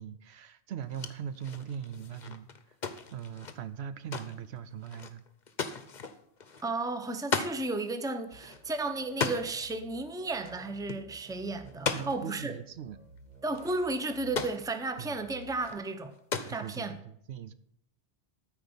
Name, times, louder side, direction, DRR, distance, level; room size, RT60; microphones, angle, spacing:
voice 1, 0.0-2.5 3.1-5.2 11.9-13.0 15.0-15.2 16.5-17.5, right 8 dB, 75° right, 0.9 m, -40 dB
sound 1, 0.8-7.6 7.9-8.0 8.3-9.6 10.3-10.6 10.9-11.0 11.7-12.4 13.2-13.3 13.5-14.7 15.4-15.8 16.1-17.0, left 5 dB, 45° left, 0.9 m, -37 dB
voice 2, 6.6-12.6 13.4-16.2 16.5-16.9, right 2 dB, 5° right, 0.7 m, -33 dB
sound 2, 8.3-15.7, right 2 dB, 45° right, 1.0 m, -54 dB
13.0 x 4.9 x 7.0 m
omnidirectional pair, 1.1 m